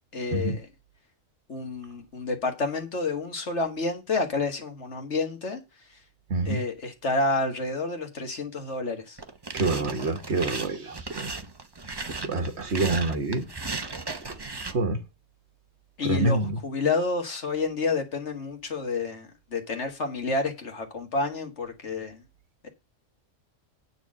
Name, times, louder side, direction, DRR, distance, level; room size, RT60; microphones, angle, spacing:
voice 1, 0.1-0.7 1.5-5.6 6.5-9.2 16.0-22.2 22.6-22.7, left 3 dB, 60° left, 2.0 m, -29 dB
voice 2, 6.3-6.6 9.5-11.3 12.2-13.5 14.7-15.0 16.0-16.6, right 2 dB, 55° right, 1.5 m, -26 dB
sound 1, 9.2-14.7, right 3 dB, 20° right, 0.8 m, -36 dB
9.4 x 4.2 x 7.4 m
omnidirectional pair, 1.4 m